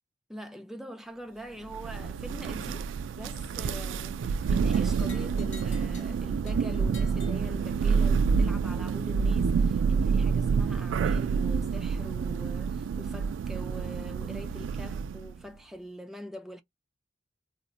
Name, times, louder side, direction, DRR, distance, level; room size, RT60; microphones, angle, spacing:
voice 1, 0.3-16.6, equal, ahead, 0.4 m, -43 dB
Thunder, 1.7-15.3, right 5 dB, 90° right, 0.3 m, -28 dB
sound 1, 4.7-8.1, left 3 dB, 80° left, 0.9 m, -52 dB
2.4 x 2.1 x 3.8 m
head